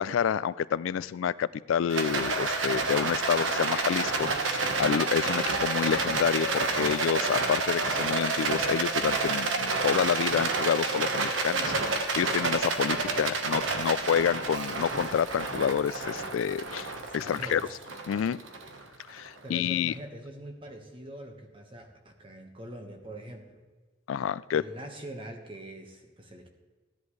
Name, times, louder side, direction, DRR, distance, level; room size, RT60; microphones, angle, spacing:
voice 1, 0.0-17.6 18.1-18.4 19.1-19.9 24.1-24.6, left 8 dB, 80° left, 17 dB, 0.3 m, -28 dB
Rattle, 1.9-19.3, right 3 dB, 80° right, 1.3 m, -29 dB
voice 2, 12.9-13.3 13.6-13.8 17.2-17.8 19.4-23.6 24.5-26.5, right 1 dB, 25° right, 4 dB, 1.3 m, -44 dB
15.5 x 10.5 x 3.2 m, 1.4 s
head